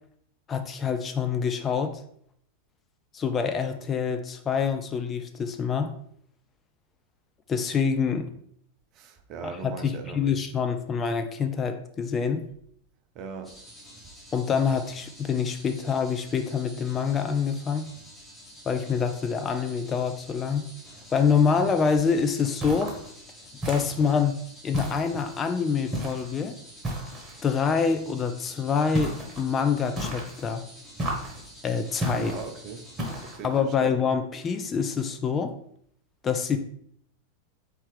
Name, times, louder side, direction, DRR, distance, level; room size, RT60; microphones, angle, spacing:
voice 1, 0.5-2.0 3.1-5.9 7.5-8.3 9.4-12.4 14.3-17.8 18.7-20.7 21.1-22.9 23.7-24.4 24.6-26.5 27.4-30.6 31.6-32.3 33.4-35.5 36.2-36.6, left 6 dB, 25° left, 7 dB, 0.4 m, -26 dB
voice 2, 8.9-10.4 13.1-13.5 32.1-32.8 33.2-33.5 33.8-34.0, right 6 dB, 40° right, 6 dB, 0.5 m, -39 dB
sound 1, 13.4-33.4, equal, 5° left, 1.1 m, -49 dB
sound 2, 22.6-23.1 23.6-24.2 24.7-25.4 25.9-26.3 26.8-27.4 28.9-29.4 30.0-30.5 31.0-31.5 32.0-32.5 33.0-33.5, right 1 dB, 20° right, 1.1 m, -33 dB
4.4 x 3.3 x 3.2 m, 0.66 s
figure-of-eight pair, 90°, 0 cm